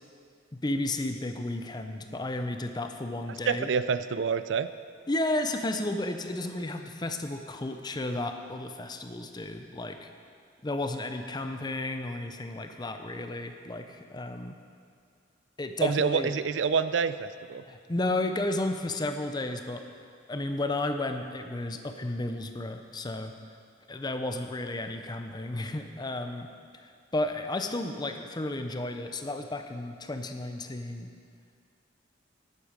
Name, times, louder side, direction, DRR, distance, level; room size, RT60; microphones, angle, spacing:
voice 1, 0.5-3.7 5.1-10.1 10.6-14.6 15.6-16.3 17.7-19.8 20.3-23.3 23.9-26.5 26.8-31.1, left 2 dB, 20° left, 6 dB, 0.6 m, -33 dB
voice 2, 3.5-4.7 15.8-17.6, right 6 dB, 65° right, 13 dB, 0.4 m, -27 dB
12.0 x 8.5 x 5.1 m, 2.2 s
head